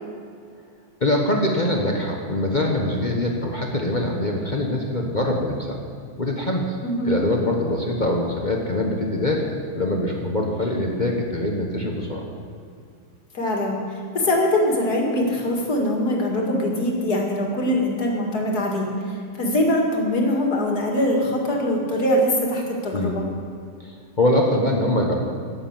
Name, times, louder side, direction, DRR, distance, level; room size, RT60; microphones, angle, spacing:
voice 1, 1.0-5.8 6.2-6.7 7.0-12.3 22.9-23.2 23.8-25.2, left 1 dB, 30° left, 0 dB, 0.9 m, -23 dB
voice 2, 6.8-7.2 13.3-13.8 14.1-23.3, left 1 dB, 45° left, 0 dB, 2.4 m, -22 dB
11.0 x 10.0 x 7.3 m, 2.4 s
omnidirectional pair, 2.4 m